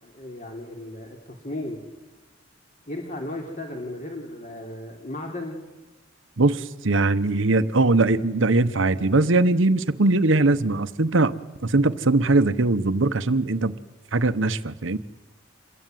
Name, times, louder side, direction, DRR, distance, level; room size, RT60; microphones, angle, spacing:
voice 1, 0.0-1.8 2.9-5.6, left 1 dB, 40° left, 1 dB, 3.2 m, -35 dB
voice 2, 6.4-11.3 11.6-13.8 14.1-15.0, right 2 dB, 70° right, 12 dB, 1.0 m, -21 dB
27.5 x 21.5 x 9.3 m, 1.1 s
head